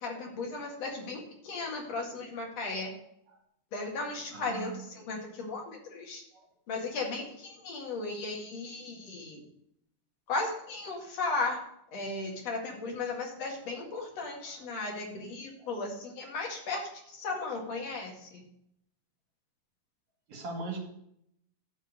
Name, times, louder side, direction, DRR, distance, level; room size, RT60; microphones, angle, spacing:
voice 1, 0.0-2.9 3.7-6.2 6.7-9.4 10.3-11.6 11.9-16.9 17.2-18.4, left 3 dB, 55° left, 0 dB, 3.0 m, -36 dB
voice 2, 4.3-4.8 6.3-6.5 13.7-13.8 14.4-14.7 15.6-15.7 20.3-20.8, right 3 dB, 60° right, 0 dB, 3.2 m, -41 dB
12.5 x 4.5 x 7.8 m, 0.75 s
omnidirectional pair, 3.6 m